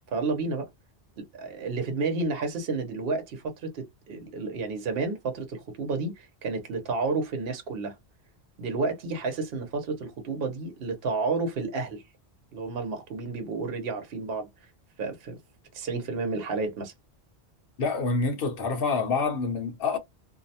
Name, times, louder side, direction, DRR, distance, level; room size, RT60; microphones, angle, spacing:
voice 1, 0.1-0.7 1.2-8.0 8.6-12.0 12.5-14.5 15.0-15.4 15.7-16.9, right 3 dB, 70° right, 0.9 m, -31 dB
voice 2, 17.8-20.0, left 4 dB, 65° left, 0.9 m, -27 dB
2.6 x 2.0 x 2.7 m
omnidirectional pair, 1.1 m